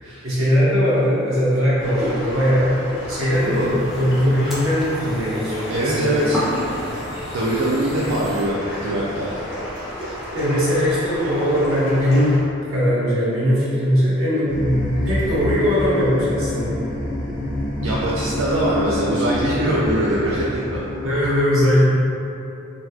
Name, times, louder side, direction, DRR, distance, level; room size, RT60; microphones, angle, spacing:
voice 1, 0.2-2.7 3.1-6.3 10.3-16.8 21.0-21.8, equal, 85° right, -10 dB, 1.2 m, -20 dB
sound 1, 1.8-12.4, equal, 65° left, 1.3 m, -32 dB
sound 2, 3.3-8.4, equal, ahead, 0.6 m, -33 dB
voice 2, 5.7-6.4 7.3-9.3 17.8-20.9, right 1 dB, 70° right, -6 dB, 0.4 m, -22 dB
sound 3, 14.5-21.3, left 1 dB, 40° left, 0.7 m, -27 dB
4.0 x 2.2 x 2.7 m, 2.8 s
head